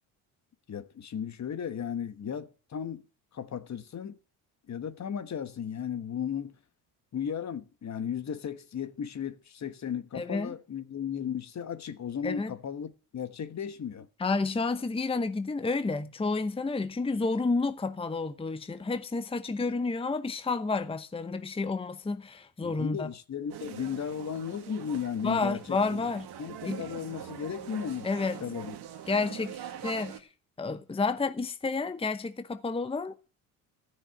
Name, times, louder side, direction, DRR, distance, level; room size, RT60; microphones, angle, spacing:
voice 1, 0.7-3.0 3.3-4.2 4.7-6.5 7.1-14.1 22.6-26.0 26.4-28.1 28.4-28.7, left 8 dB, 40° left, 1.2 m, -35 dB
voice 2, 10.1-10.5 12.2-12.5 14.2-23.1 25.2-26.3 26.6-26.8 28.0-28.4 29.1-30.3 30.6-33.3, left 3 dB, 15° left, 0.9 m, -30 dB
sound 1, 23.5-30.2, right 10 dB, 65° right, 1.9 m, -43 dB
14.0 x 6.6 x 9.0 m
supercardioid pair, 65°, 43 cm